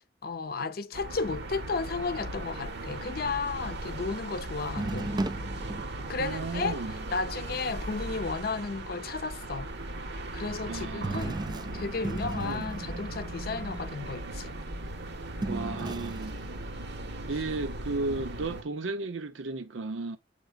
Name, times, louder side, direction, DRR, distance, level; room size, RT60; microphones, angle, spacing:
voice 1, 0.0-5.1 6.1-9.7 10.1-11.4 11.7-14.5, left 4 dB, 50° left, 0.6 m, -34 dB
sound 1, 0.9-18.6, right 1 dB, 60° right, 0.9 m, -38 dB
sound 2, 4.8-7.2 7.9-8.0 11.0-16.6 18.1-18.2, right 2 dB, 20° right, 0.4 m, -37 dB
voice 2, 6.2-6.9 10.7-11.3 12.4-12.7 15.5-16.4 17.3-20.2, right 3 dB, 80° right, 0.6 m, -34 dB
7.9 x 5.3 x 2.4 m
head